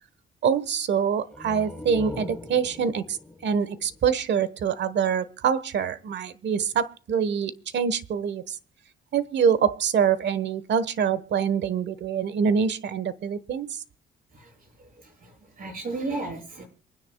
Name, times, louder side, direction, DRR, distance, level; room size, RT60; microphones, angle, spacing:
voice 1, 0.4-3.2 3.4-8.6 9.1-13.8, right 7 dB, 65° right, 1.3 m, -25 dB
sound 1, 1.3-4.8, left 2 dB, 5° left, 1.4 m, -41 dB
voice 2, 14.3-16.6, right 3 dB, 45° right, 6.8 m, -35 dB
27.0 x 10.0 x 2.3 m
cardioid pair, 90°, 20 cm